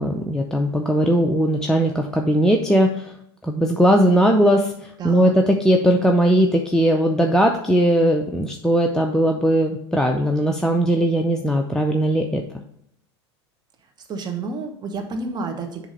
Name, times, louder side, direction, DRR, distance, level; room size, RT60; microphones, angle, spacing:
voice 1, 0.0-3.1 3.4-12.4, equal, 5° left, 2 dB, 0.5 m, -19 dB
voice 2, 5.0-5.3 14.1-15.9, right 3 dB, 30° right, 4 dB, 1.1 m, -30 dB
7.2 x 2.9 x 5.1 m, 0.73 s
hypercardioid pair, 85°, 14 cm